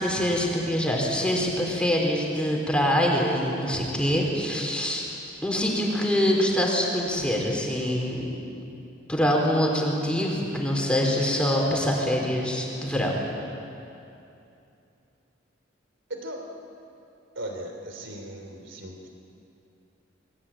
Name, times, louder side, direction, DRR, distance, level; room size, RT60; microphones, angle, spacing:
voice 1, 0.0-5.0 5.4-8.3 9.1-13.1, equal, 5° left, -1 dB, 4.2 m, -24 dB
voice 2, 16.1-16.4 17.3-19.1, right 1 dB, 75° right, 3 dB, 3.3 m, -37 dB
28.5 x 21.5 x 8.9 m, 2.7 s
head